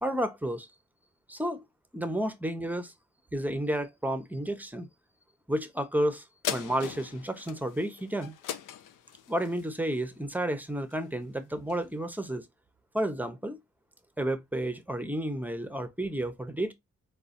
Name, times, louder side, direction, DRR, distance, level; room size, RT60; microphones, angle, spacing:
voice 1, 0.0-0.7 1.3-1.6 1.9-2.9 3.3-4.9 5.5-6.2 6.5-8.3 9.3-12.4 12.9-13.6 14.2-16.7, right 1 dB, 5° right, 0.7 m, -31 dB
sound 1, 6.4-11.2 11.7-11.8, left 10 dB, 80° left, 0.5 m, -39 dB
3.9 x 2.3 x 2.5 m
supercardioid pair, 45°, 31 cm